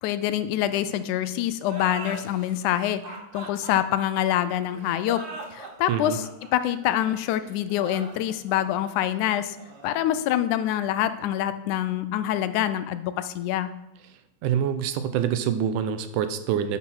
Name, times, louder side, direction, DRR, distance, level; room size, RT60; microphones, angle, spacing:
voice 1, 0.0-5.3 5.5-9.6 9.8-13.7, left 12 dB, 85° left, 12 dB, 2.1 m, -26 dB
sound 1, 1.6-10.9, right 3 dB, 55° right, 2.3 m, -42 dB
voice 2, 5.9-6.2 14.4-16.8, right 8 dB, 90° right, 10 dB, 2.3 m, -26 dB
10.0 x 5.6 x 6.1 m, 0.93 s
omnidirectional pair, 3.4 m